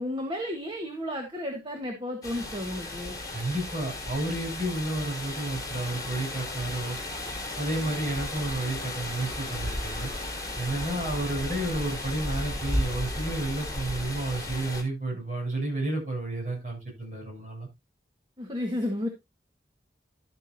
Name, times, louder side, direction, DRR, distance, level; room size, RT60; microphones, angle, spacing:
voice 1, 0.0-3.2 18.4-19.1, left 1 dB, 25° right, 3 dB, 1.5 m, -32 dB
sound 1, 2.2-14.8, left 1 dB, 20° left, 3.1 m, -34 dB
voice 2, 3.3-7.0 7.6-10.1 10.6-17.7, right 2 dB, 45° right, -1 dB, 7.7 m, -31 dB
12.0 x 9.4 x 2.8 m, 0.23 s
head